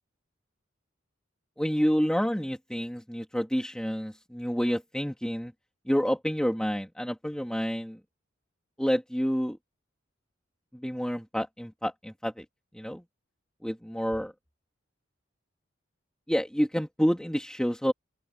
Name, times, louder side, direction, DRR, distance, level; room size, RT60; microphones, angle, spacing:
voice 1, 1.6-5.5 5.9-8.0 8.8-9.6 10.8-12.4 12.7-13.0 13.6-14.3 16.3-17.9, equal, 5° left, 2.7 m, -28 dB
open air
head